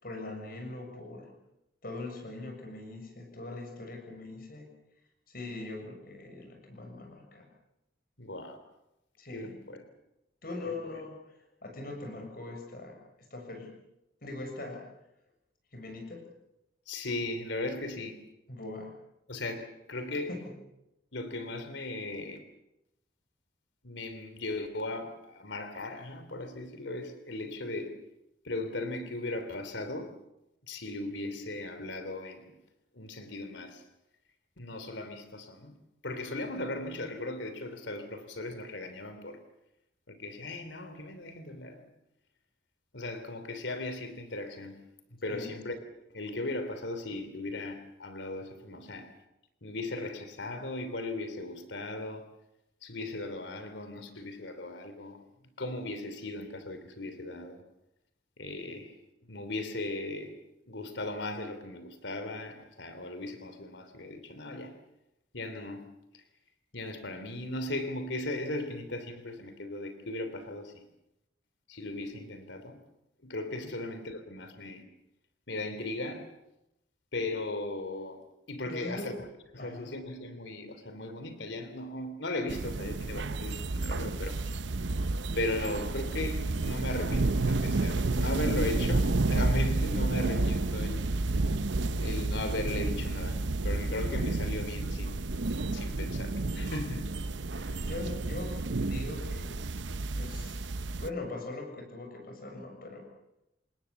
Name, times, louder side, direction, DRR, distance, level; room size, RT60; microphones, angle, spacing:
voice 1, 0.0-1.3 1.8-4.7 5.3-7.5 9.2-9.6 10.4-13.7 14.2-14.9 15.7-16.3 18.5-18.9 20.3-20.5 45.3-45.6 73.6-73.7 78.7-79.2 79.6-79.9 97.8-100.7 101.0-103.1, left 2 dB, 55° left, 3 dB, 6.8 m, -41 dB
voice 2, 8.2-8.6 9.3-9.8 10.6-11.0 16.9-18.2 19.3-20.3 21.1-22.4 23.8-27.9 28.4-30.1 30.7-32.6 32.9-33.8 34.6-35.7 36.0-39.4 40.1-41.9 42.9-44.8 45.2-45.8 46.1-49.1 49.6-52.3 52.8-57.6 58.4-58.9 59.2-60.3 60.7-64.7 65.3-65.9 66.1-66.2 66.7-70.9 71.7-72.8 73.2-74.8 75.5-76.3 77.1-78.2 78.5-79.2 79.5-84.4 85.3-91.1 92.0-95.3 95.7-97.1 97.5-97.8, left 2 dB, 85° left, 9 dB, 3.2 m, -37 dB
sound 1, 82.5-101.1, right 2 dB, 85° right, 0.8 m, -30 dB
27.0 x 20.5 x 7.1 m, 0.88 s
head